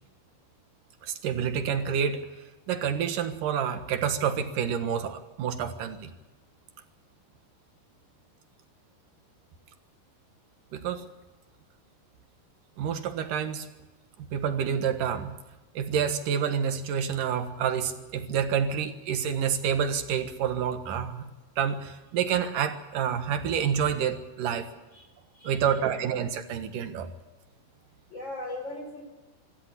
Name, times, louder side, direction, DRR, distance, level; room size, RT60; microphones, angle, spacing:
voice 1, 1.0-2.3 2.7-6.1 10.7-11.0 12.8-13.7 14.3-15.4 15.7-21.2 21.6-24.7 25.4-27.1, right 8 dB, 75° right, 8 dB, 3.1 m, -28 dB
voice 2, 25.3-26.0 28.1-29.0, left 2 dB, 30° left, 3 dB, 5.4 m, -39 dB
25.5 x 13.5 x 8.3 m, 1.2 s
omnidirectional pair, 4.0 m